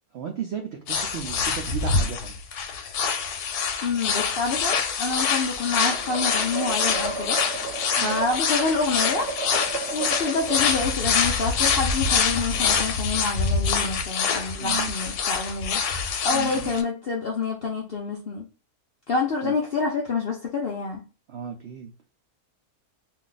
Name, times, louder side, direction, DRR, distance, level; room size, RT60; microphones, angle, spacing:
voice 1, 0.1-2.3 8.0-8.2 14.6-14.9 16.3-16.7 19.4-19.5 21.3-21.9, right 8 dB, 85° right, 0.5 m, -34 dB
sound 1, 0.9-16.8, left 6 dB, 80° left, 1.1 m, -25 dB
voice 2, 3.8-7.4 8.0-9.3 9.9-18.5 19.1-21.0, left 4 dB, 65° left, 0.5 m, -27 dB
sound 2, 5.7-10.9, right 4 dB, 55° right, 0.9 m, -33 dB
2.6 x 2.3 x 3.8 m
omnidirectional pair, 1.7 m